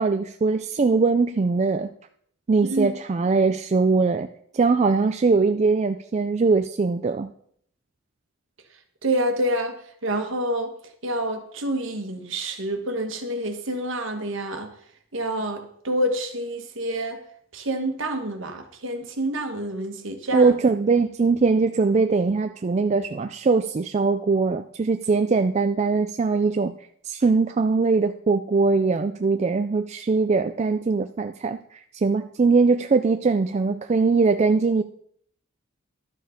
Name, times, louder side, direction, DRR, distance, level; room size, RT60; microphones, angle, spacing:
voice 1, 0.0-1.9 2.5-4.3 4.5-7.3 20.3-26.7 27.0-34.8, right 4 dB, 30° right, 0.3 m, -21 dB
voice 2, 9.0-10.7 11.0-14.7 15.1-17.2 17.5-20.5, right 1 dB, 60° right, 1.5 m, -27 dB
12.5 x 6.5 x 5.1 m
head